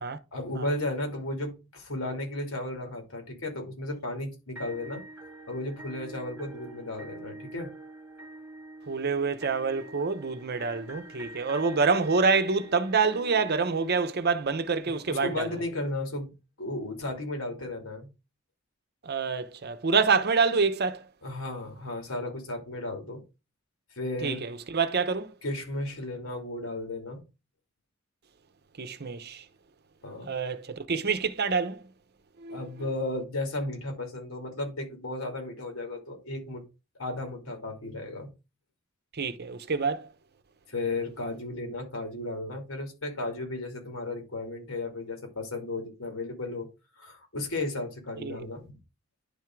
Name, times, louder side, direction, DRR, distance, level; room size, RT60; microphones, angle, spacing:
voice 1, 0.3-5.0 5.5-7.7 14.8-16.3 16.6-18.1 21.2-23.2 23.9-24.4 25.4-27.2 30.0-30.3 32.5-36.6 37.0-38.3 40.7-46.7 47.0-48.8, left 2 dB, 80° left, 2.8 m, -34 dB
sound 1, 4.6-14.6, right 2 dB, 10° right, 1.7 m, -46 dB
voice 2, 8.9-15.5 19.0-21.0 24.2-25.3 28.8-29.4 30.3-31.8 32.4-32.6 39.1-40.1 48.2-48.5, right 4 dB, 50° right, 0.8 m, -27 dB
10.5 x 3.6 x 4.5 m
head